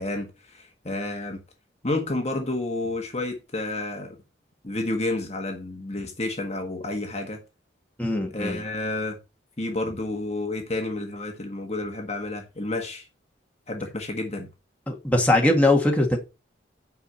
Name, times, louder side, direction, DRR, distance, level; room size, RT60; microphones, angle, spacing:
voice 1, 0.0-1.4 1.8-4.2 4.6-7.4 8.3-9.2 9.6-13.1 13.7-14.5, left 2 dB, 35° left, 1.5 m, -30 dB
voice 2, 8.0-8.6 14.9-16.2, left 1 dB, 5° left, 2.0 m, -21 dB
9.4 x 5.2 x 5.6 m
head